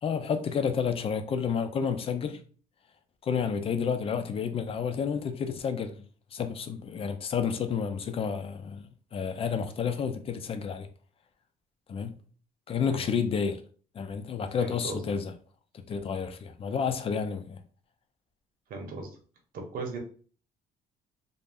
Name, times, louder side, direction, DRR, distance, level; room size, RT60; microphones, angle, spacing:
voice 1, 0.0-2.4 3.2-6.0 6.3-10.9 11.9-12.2 12.7-13.6 13.9-15.3 15.7-17.6, left 6 dB, 35° left, 0.4 m, -30 dB
voice 2, 14.6-15.2 18.7-19.1 19.5-20.0, right 3 dB, 55° right, 0.8 m, -37 dB
2.5 x 2.0 x 3.4 m
cardioid pair, 110°, 17 cm